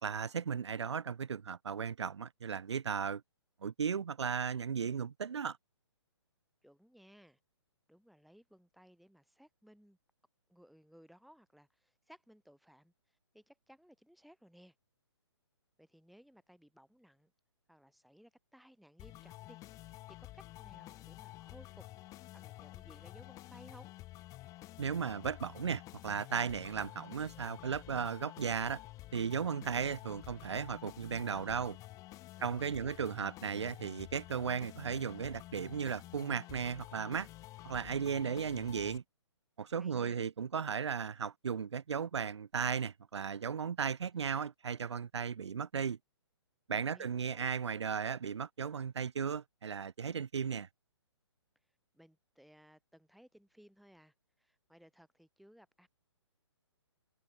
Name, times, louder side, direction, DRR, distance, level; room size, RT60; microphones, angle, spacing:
voice 1, 0.0-3.2 3.6-5.6 24.8-28.8 29.1-31.8 32.4-37.3 37.6-39.0 39.6-46.0 46.7-50.7, right 6 dB, 70° right, 0.8 m, -36 dB
voice 2, 6.6-7.4 7.9-10.0 10.5-14.8 15.8-17.3 17.7-21.9 22.3-23.9 32.3-33.0 39.7-40.2 46.9-47.6 51.9-55.9, equal, ahead, 6.9 m, -61 dB
sound 1, 19.0-39.0, left 17 dB, 20° left, 2.3 m, -51 dB
figure-of-eight pair, 135°, 15 cm